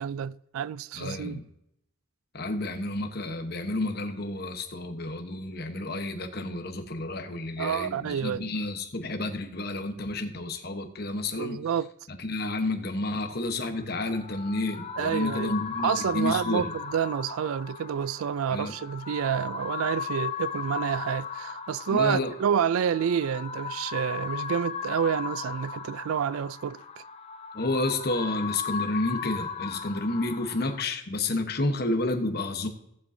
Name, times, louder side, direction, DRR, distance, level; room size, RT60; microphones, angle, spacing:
voice 1, 0.0-1.4 7.6-8.5 11.4-11.9 15.0-15.5 15.8-26.8, right 8 dB, 85° right, 0.3 m, -28 dB
voice 2, 0.9-1.4 2.3-11.6 12.2-16.7 18.5-18.7 21.9-22.3 27.5-32.7, left 2 dB, 45° left, 1.1 m, -30 dB
sound 1, 13.8-30.8, left 6 dB, 30° left, 0.5 m, -37 dB
16.5 x 7.6 x 2.7 m
head